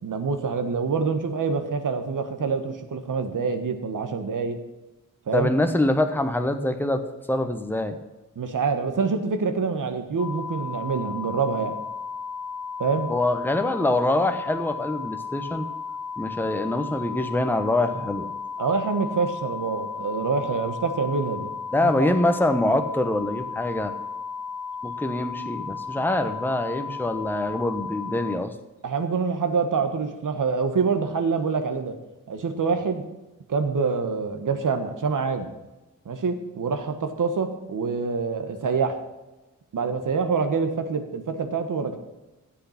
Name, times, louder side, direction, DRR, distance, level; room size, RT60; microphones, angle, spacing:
voice 1, 0.0-4.6 5.3-5.5 8.3-11.8 12.8-13.1 18.6-21.5 22.0-22.1 28.8-31.9 32.3-33.0 33.5-35.5 36.0-39.0 39.7-42.0, right 5 dB, 70° right, 6 dB, 1.6 m, -26 dB
voice 2, 5.3-8.0 13.1-15.7 16.2-18.3 21.7-23.9 24.8-28.5, left 1 dB, 5° left, 7 dB, 1.1 m, -24 dB
sound 1, 10.2-28.4, left 5 dB, 85° left, 1.2 m, -34 dB
14.0 x 8.4 x 5.9 m, 1.1 s
wide cardioid pair, 115°, 32 cm